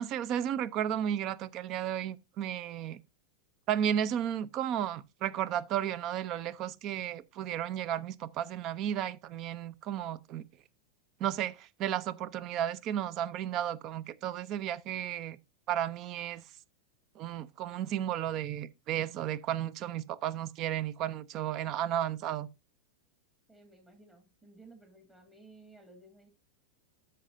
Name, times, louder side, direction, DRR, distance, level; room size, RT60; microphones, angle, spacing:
voice 1, 0.0-3.0 3.7-10.4 11.2-15.4 15.7-16.4 17.2-22.5, right 10 dB, 40° right, 0.6 m, -33 dB
voice 2, 23.5-26.3, right 2 dB, 15° right, 2.3 m, -56 dB
13.5 x 5.7 x 2.6 m
figure-of-eight pair, 90°, 0 cm